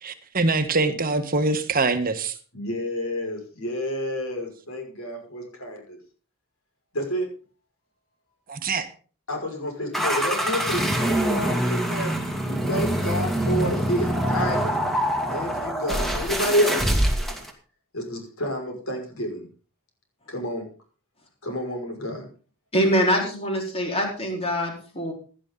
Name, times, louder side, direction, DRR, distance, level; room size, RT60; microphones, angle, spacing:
voice 1, 0.0-2.4 8.5-8.9, right 3 dB, 45° right, 9 dB, 1.3 m, -24 dB
voice 2, 2.5-6.0 6.9-7.3 9.3-12.1 12.5-14.8 15.3-16.8 17.9-19.5 20.3-20.7 21.4-22.3, equal, 80° left, 2 dB, 5.7 m, -29 dB
sound 1, 9.9-17.5, right 1 dB, ahead, 2.4 m, -25 dB
voice 3, 22.7-25.1, equal, 30° left, 1 dB, 4.3 m, -24 dB
16.5 x 11.0 x 3.9 m, 0.39 s
head